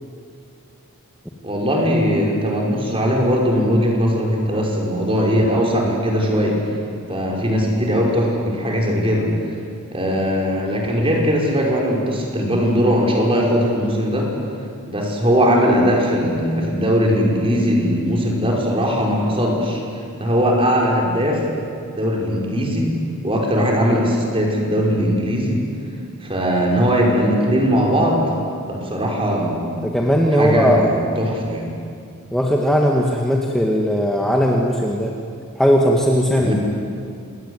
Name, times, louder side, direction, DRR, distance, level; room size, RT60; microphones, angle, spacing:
voice 1, 1.4-6.6 7.1-9.3 9.9-14.3 14.9-19.8 20.2-21.4 22.0-22.9 23.2-25.7 26.2-28.3 28.7-29.8 30.3-31.7 36.4-36.5, equal, 25° right, -2 dB, 5.6 m, -19 dB
voice 2, 29.8-31.0 32.3-35.1 35.6-36.5, equal, ahead, -1 dB, 1.9 m, -18 dB
27.5 x 21.5 x 9.8 m, 2.4 s
head